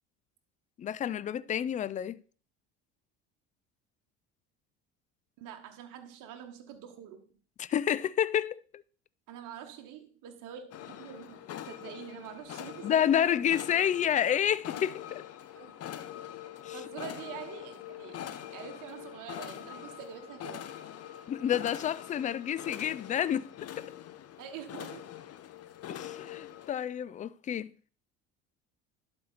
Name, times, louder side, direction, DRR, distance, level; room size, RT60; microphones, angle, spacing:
voice 1, 0.8-2.2 7.6-8.6 12.8-15.2 16.6-16.8 21.3-23.5 23.8-23.9 25.9-27.7, left 9 dB, 25° left, 0.3 m, -29 dB
voice 2, 5.4-7.3 9.3-13.0 13.3-13.4 15.5-15.7 16.7-20.6 24.4-25.1 25.9-26.1, right 9 dB, 60° right, 1.2 m, -46 dB
sound 1, 10.7-26.7, left 11 dB, 45° left, 0.8 m, -44 dB
11.5 x 4.4 x 4.0 m
hypercardioid pair, 70°, 35 cm